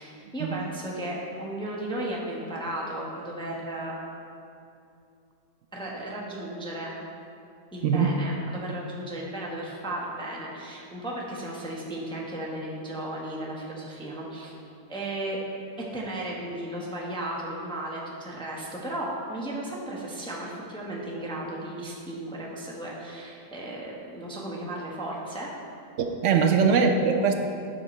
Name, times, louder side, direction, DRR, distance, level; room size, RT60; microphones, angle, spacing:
voice 1, 0.0-3.9 5.7-7.0 7.7-14.6 14.9-15.4 15.8-25.5, right 1 dB, 5° left, -4 dB, 0.7 m, -35 dB
voice 2, 26.0-27.3, right 5 dB, 75° right, 4 dB, 0.7 m, -22 dB
9.3 x 5.7 x 4.3 m, 2.6 s
omnidirectional pair, 1.8 m